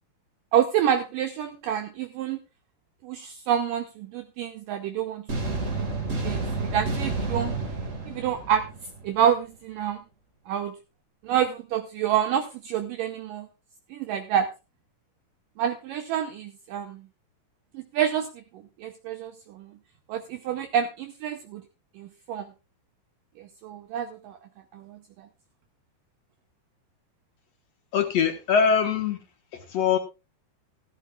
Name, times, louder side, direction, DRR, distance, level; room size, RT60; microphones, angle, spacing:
voice 1, 0.5-2.4 3.0-5.6 6.2-6.4 6.7-7.5 8.1-8.7 9.0-10.0 10.5-10.8 11.2-13.5 13.9-14.5 15.6-17.0 17.7-19.7 20.1-21.6 22.0-22.5 23.4-24.4 24.7-25.3, right 9 dB, 80° right, 7 dB, 2.0 m, -28 dB
sound 1, 5.3-9.3, right 3 dB, 40° right, 1.1 m, -30 dB
voice 2, 27.9-29.2 29.5-30.0, left 6 dB, 60° left, 6 dB, 1.8 m, -23 dB
15.0 x 14.0 x 2.4 m, 0.27 s
omnidirectional pair, 4.8 m